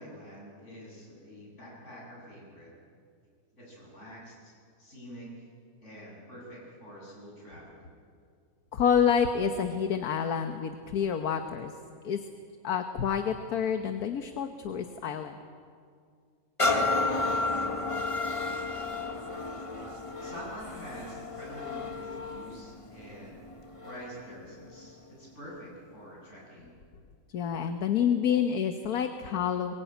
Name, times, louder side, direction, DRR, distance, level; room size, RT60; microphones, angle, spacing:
voice 1, 0.0-2.7 3.5-5.5 5.8-7.9 20.2-23.5 23.8-26.8, equal, 50° left, -4 dB, 8.3 m, -46 dB
voice 2, 8.7-11.7 12.0-12.2 12.6-15.4 27.3-29.7, left 7 dB, 80° left, 7 dB, 1.5 m, -28 dB
sound 1, 16.6-24.2 24.8-24.9, left 3 dB, 20° left, 1.6 m, -32 dB
22.5 x 22.0 x 9.1 m, 2.2 s
omnidirectional pair, 1.6 m